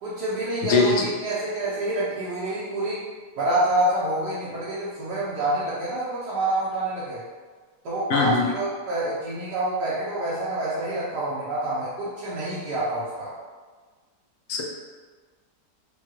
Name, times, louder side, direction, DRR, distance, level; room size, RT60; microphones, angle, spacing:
voice 1, 0.0-3.0 3.4-7.2 7.8-13.3, right 1 dB, 85° right, -11 dB, 1.4 m, -27 dB
voice 2, 0.7-1.1 8.1-8.4 14.5-14.6, left 4 dB, 65° left, 0 dB, 0.8 m, -21 dB
4.8 x 2.2 x 3.0 m, 1.4 s
omnidirectional pair, 1.7 m